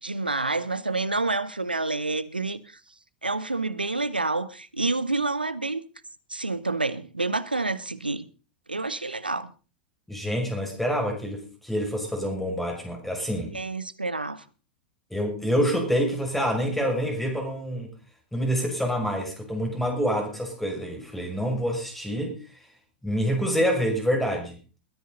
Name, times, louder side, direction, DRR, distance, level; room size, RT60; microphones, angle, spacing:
voice 1, 0.0-2.8 3.2-5.8 6.3-8.3 8.7-9.5 13.2-14.4, right 3 dB, 85° right, 0.9 m, -28 dB
voice 2, 10.1-13.5 15.1-17.9 18.3-22.3 23.0-24.6, equal, 5° left, 6.0 m, -27 dB
21.5 x 10.5 x 4.0 m
figure-of-eight pair, 90°, 5 cm